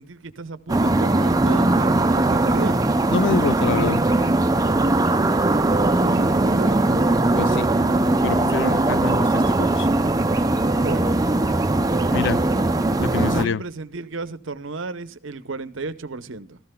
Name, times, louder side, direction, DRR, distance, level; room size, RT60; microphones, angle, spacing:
voice 1, 0.0-2.8 5.6-6.9 10.7-11.3 13.0-16.6, right 3 dB, 65° right, 0.8 m, -34 dB
sound 1, 0.7-13.5, right 2 dB, 20° right, 0.5 m, -20 dB
voice 2, 3.1-4.0 7.4-7.7 8.2-9.9 12.1-12.4 13.0-13.6, left 5 dB, 60° left, 0.4 m, -26 dB
16.5 x 14.0 x 2.2 m
head